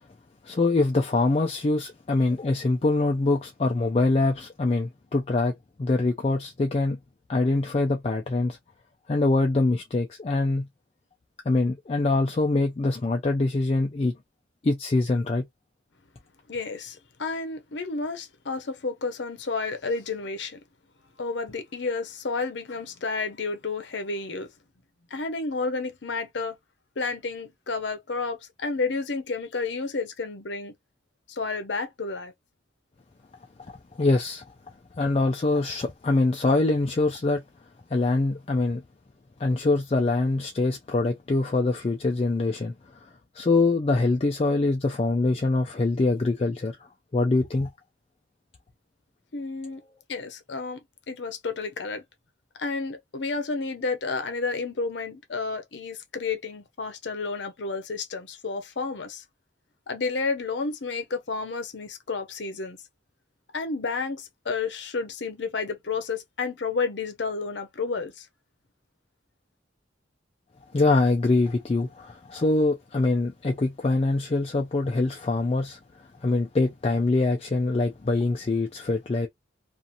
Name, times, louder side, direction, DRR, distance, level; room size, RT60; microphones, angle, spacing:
voice 1, 0.4-5.5 5.8-7.0 7.3-8.6 9.1-10.7 11.5-14.1 14.6-15.5 33.6-33.7 34.0-34.4 35.0-37.4 37.9-38.8 39.4-42.7 43.3-46.8 47.1-47.7 49.8-49.9 70.7-75.8 76.2-79.3, left 2 dB, 30° left, 0.3 m, -24 dB
voice 2, 16.5-20.6 21.2-24.5 25.1-26.6 27.0-30.7 31.3-32.3 49.3-49.8 50.1-52.0 52.6-59.2 59.9-62.8 63.5-68.3, left 4 dB, 75° left, 0.7 m, -31 dB
2.8 x 2.5 x 2.5 m
head